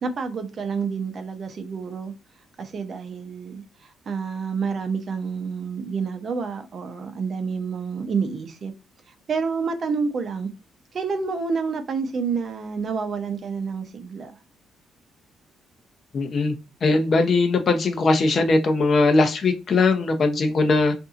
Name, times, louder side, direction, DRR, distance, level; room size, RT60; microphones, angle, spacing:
voice 1, 0.0-2.1 2.6-8.7 9.3-10.5 10.9-14.3, right 5 dB, 50° right, 0.6 m, -28 dB
voice 2, 16.1-16.5 16.8-20.9, left 3 dB, 50° left, 0.6 m, -20 dB
2.7 x 2.6 x 2.4 m
cardioid pair, 90°, 0 cm